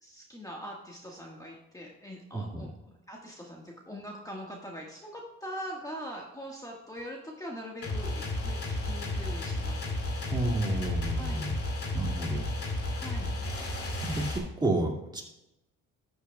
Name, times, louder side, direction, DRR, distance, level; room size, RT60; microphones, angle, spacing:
voice 1, 0.0-2.7 3.1-8.6 8.8-9.9 11.1-11.5 12.9-13.3, equal, 10° left, -1 dB, 1.5 m, -42 dB
voice 2, 2.3-2.7 10.3-11.6 11.9-12.5 12.8-13.0 14.0-15.2, right 2 dB, 15° right, 0 dB, 2.1 m, -31 dB
sound 1, 7.8-14.4, left 2 dB, 50° left, 2.3 m, -32 dB
12.5 x 8.1 x 2.3 m, 0.89 s
cardioid pair, 90°, 30 cm